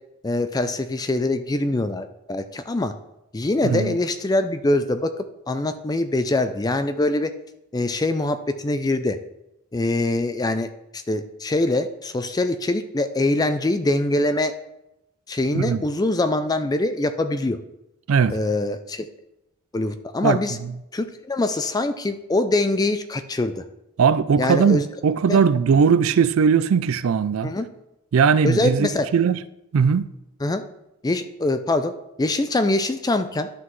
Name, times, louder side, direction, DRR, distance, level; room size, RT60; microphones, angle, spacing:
voice 1, 0.2-2.9 3.3-7.3 7.7-9.2 9.7-14.5 15.3-17.6 18.3-19.1 19.7-20.6 20.9-23.6 24.4-24.9 25.3-25.4 27.4-27.7 28.4-29.1 30.4-30.6 31.0-31.9 32.2-33.5, left 2 dB, 20° left, 0.4 m, -23 dB
voice 2, 3.6-4.0 15.5-15.8 18.1-18.4 20.2-20.7 24.0-27.5 28.1-29.4 29.7-30.1, right 6 dB, 70° right, 0.4 m, -19 dB
11.5 x 5.7 x 3.2 m
head